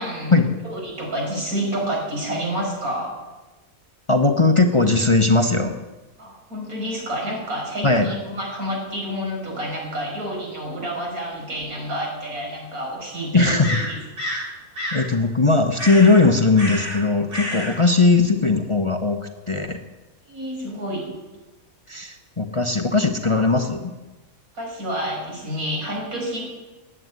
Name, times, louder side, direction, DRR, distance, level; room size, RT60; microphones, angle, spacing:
voice 1, 0.0-0.3 0.6-3.2 6.2-14.0 20.3-21.1 24.5-26.4, equal, 85° right, -2 dB, 6.1 m, -29 dB
voice 2, 4.1-5.7 7.8-8.1 13.3-13.8 14.9-19.8 21.9-23.9, left 3 dB, 25° left, 6 dB, 0.9 m, -18 dB
sound 1, 11.6-11.7 13.6-14.5 14.8-15.1 15.8-16.2 16.5-17.0 17.3-17.8, equal, 40° right, 3.9 m, -29 dB
15.5 x 9.4 x 9.4 m, 1.1 s
omnidirectional pair, 1.5 m